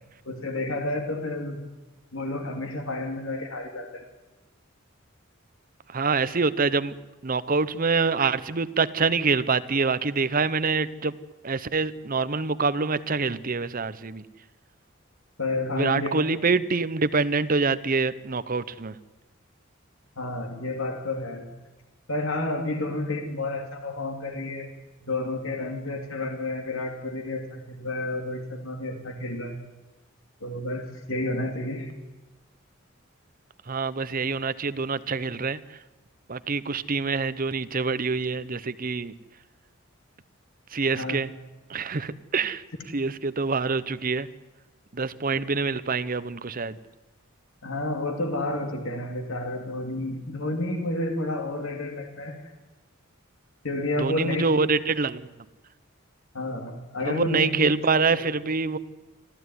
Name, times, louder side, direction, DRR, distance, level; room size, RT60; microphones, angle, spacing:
voice 1, 0.2-1.6 2.1-4.0 15.4-16.2 20.2-21.4 22.1-24.7 25.0-29.6 30.4-31.9 40.9-41.1 47.6-52.5 53.6-54.4 56.3-57.5 57.9-58.3, left 2 dB, 75° left, 4 dB, 2.9 m, -30 dB
voice 2, 5.9-7.0 7.2-11.1 11.4-14.2 15.7-18.9 33.7-35.6 36.3-39.1 40.7-41.3 41.7-42.6 42.9-44.3 44.9-46.8 54.0-55.2 57.0-58.8, right 4 dB, 45° right, 14 dB, 0.8 m, -25 dB
25.5 x 15.5 x 9.7 m, 1.1 s
head